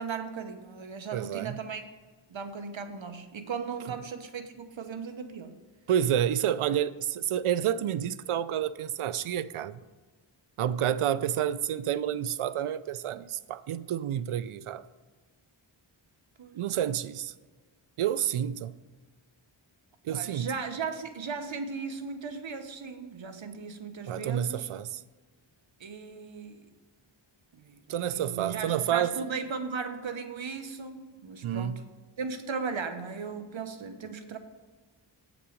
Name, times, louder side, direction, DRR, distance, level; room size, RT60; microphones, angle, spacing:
voice 1, 0.0-1.8 2.3-5.6 16.4-16.5 20.1-24.7 25.8-26.7 27.5-31.8 32.2-34.4, right 5 dB, 65° right, 1.1 m, -37 dB
voice 2, 1.1-1.6 5.9-9.8 10.6-14.8 16.5-17.3 18.0-18.7 20.0-20.5 24.1-25.0 27.9-29.1 31.4-31.8, right 10 dB, 80° right, 0.5 m, -29 dB
8.3 x 7.3 x 5.1 m
wide cardioid pair, 60°, 49 cm